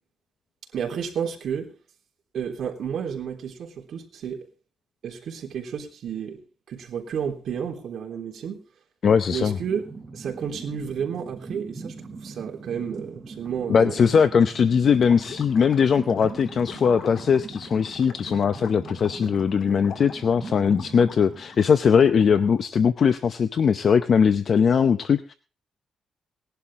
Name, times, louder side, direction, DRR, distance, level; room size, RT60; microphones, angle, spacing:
voice 1, 0.7-1.7 2.3-4.5 5.0-6.4 6.7-8.6 9.3-9.9 10.1-14.0, right 7 dB, 65° right, 3.4 m, -31 dB
voice 2, 9.0-9.6 13.7-25.3, left 6 dB, 45° left, 0.7 m, -20 dB
sound 1, 9.6-22.3, right 4 dB, 15° right, 3.8 m, -41 dB
Gurgling / Liquid, 14.8-22.6, left 6 dB, 65° left, 1.8 m, -43 dB
19.0 x 11.5 x 3.6 m
wide cardioid pair, 160°, 0 cm